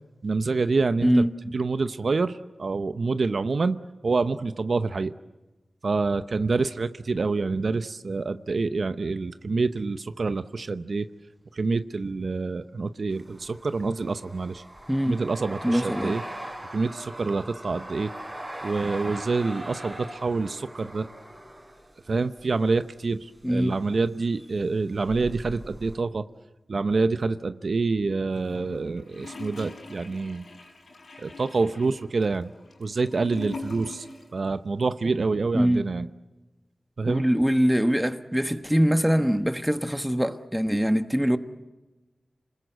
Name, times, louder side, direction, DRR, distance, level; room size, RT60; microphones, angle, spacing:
voice 1, 0.2-1.2 1.5-5.1 5.8-11.1 11.6-14.6 15.1-16.2 16.7-18.1 18.6-21.1 22.1-26.2 26.7-30.5 31.2-32.5 32.8-34.1 34.3-36.1 37.0-37.2, right 3 dB, 65° right, 0.8 m, -27 dB
voice 2, 1.0-1.3 14.9-15.2 15.6-16.2 23.4-23.8 35.5-35.9 37.1-41.4, equal, 5° right, 1.3 m, -23 dB
sound 1, 13.1-22.6 23.6-24.1 24.3-26.0, right 1 dB, 25° right, 4.2 m, -40 dB
Gurgling / Toilet flush, 28.3-34.4 34.6-34.7, left 2 dB, 80° left, 6.0 m, -42 dB
27.5 x 20.5 x 8.0 m
cardioid pair, 55°, 0 cm